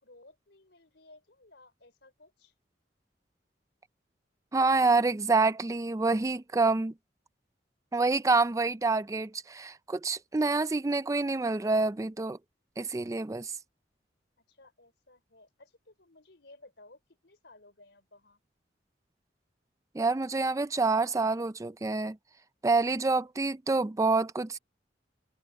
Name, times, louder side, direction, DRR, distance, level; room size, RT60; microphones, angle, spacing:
voice 1, 0.0-2.5 14.5-18.4, left 2 dB, 70° left, 4.5 m, -57 dB
voice 2, 4.5-6.9 7.9-12.4 12.8-13.5 19.9-22.2 22.6-24.6, right 3 dB, 15° right, 0.4 m, -27 dB
head